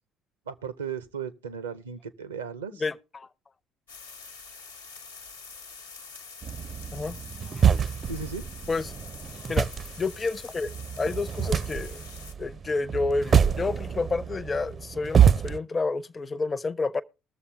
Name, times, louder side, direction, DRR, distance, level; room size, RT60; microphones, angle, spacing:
voice 1, 0.5-2.8 8.1-8.4, right 6 dB, 85° right, 0.6 m, -36 dB
voice 2, 2.8-3.3 6.9-7.2 8.7-8.9 9.5-9.7 10.0-10.7 11.0-12.0 12.4-17.0, left 3 dB, 30° left, 0.5 m, -29 dB
sound 1, 3.9-12.3, left 5 dB, 85° left, 0.9 m, -46 dB
sound 2, 6.4-15.6, right 8 dB, 40° right, 0.5 m, -26 dB
20.5 x 7.0 x 3.3 m
figure-of-eight pair, 50°, 0 cm